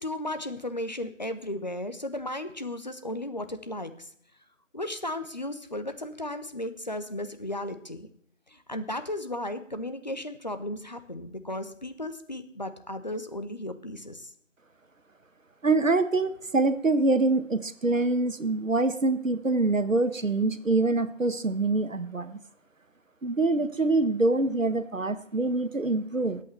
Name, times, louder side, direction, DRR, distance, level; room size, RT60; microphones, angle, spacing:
voice 1, 0.0-4.1 4.7-8.1 8.5-14.3 25.4-25.6, left 1 dB, 35° left, 10 dB, 0.8 m, -35 dB
voice 2, 15.6-22.4 23.2-26.4, right 3 dB, 90° right, 11 dB, 1.3 m, -25 dB
22.0 x 8.5 x 3.2 m, 0.64 s
figure-of-eight pair, 170°, 38 cm